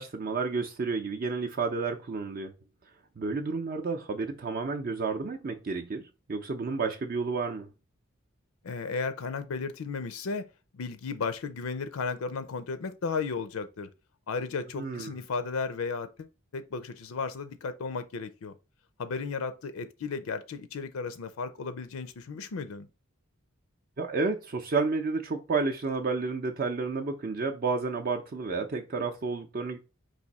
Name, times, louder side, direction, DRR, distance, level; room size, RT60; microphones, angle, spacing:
voice 1, 0.0-2.5 3.2-6.0 6.3-7.7 14.8-15.1 24.0-29.8, right 4 dB, 45° right, 0.5 m, -31 dB
voice 2, 8.6-10.5 10.7-13.9 14.3-16.3 16.5-18.5 19.0-22.9, left 4 dB, 75° left, 0.5 m, -34 dB
4.8 x 2.6 x 4.1 m
head